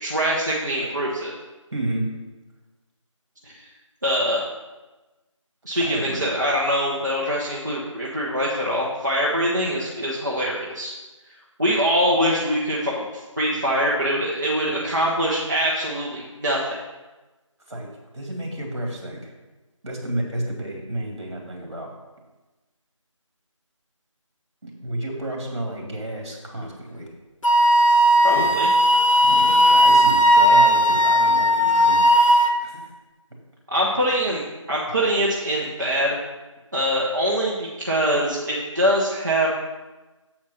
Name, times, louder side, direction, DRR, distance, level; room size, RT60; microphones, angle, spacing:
voice 1, 0.0-1.3 3.4-3.7 4.0-4.4 5.6-10.9 11.6-16.8 28.2-28.7 33.7-34.4 34.7-36.2 36.7-39.5, equal, 35° right, -5 dB, 0.9 m, -23 dB
voice 2, 1.7-2.1 5.8-6.3 17.7-17.9 18.1-19.3 19.8-21.9 24.6-27.1 28.3-28.6 29.2-32.3 32.6-32.9, right 1 dB, 55° right, 0 dB, 2.4 m, -31 dB
Wind instrument woodwind instrument, 27.4-32.6, equal, 75° left, 0.8 m, -16 dB
7.7 x 4.5 x 5.7 m, 1.1 s
figure-of-eight pair, 175°, 17 cm